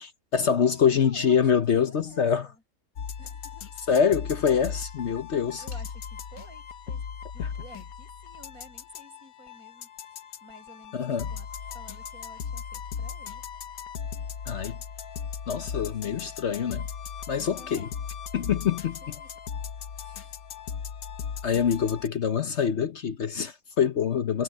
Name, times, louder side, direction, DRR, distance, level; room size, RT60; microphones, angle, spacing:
voice 1, 0.0-2.5 3.9-5.6 7.4-7.5 10.9-11.3 14.5-14.8 15.5-16.9 17.3-17.9 18.3-19.1 21.4-24.4, left 7 dB, 55° left, 1.0 m, -25 dB
voice 2, 0.6-1.5 1.9-2.6 3.2-3.7 4.5-4.8 5.1-5.3 5.6-7.0 7.3-9.9 10.4-13.4 15.8-16.2 17.5-17.9 19.0-19.4 20.0-20.4 24.3-24.4, right 2 dB, 70° right, 6.7 m, -52 dB
sound 1, 3.0-22.1, left 7 dB, 75° left, 1.4 m, -38 dB
omnidirectional pair, 1.6 m